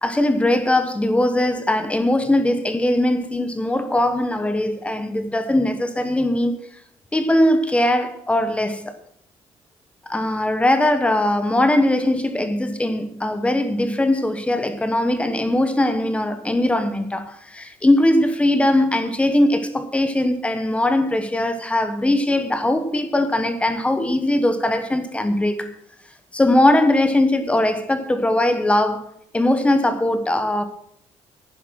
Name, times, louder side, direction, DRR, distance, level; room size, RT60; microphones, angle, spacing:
voice 1, 0.0-6.6 7.1-8.9 10.1-25.7 26.3-29.1 29.3-30.6, left 1 dB, 10° left, 1.2 m, -20 dB
10.5 x 10.5 x 6.1 m
cardioid pair, 160°, 12 cm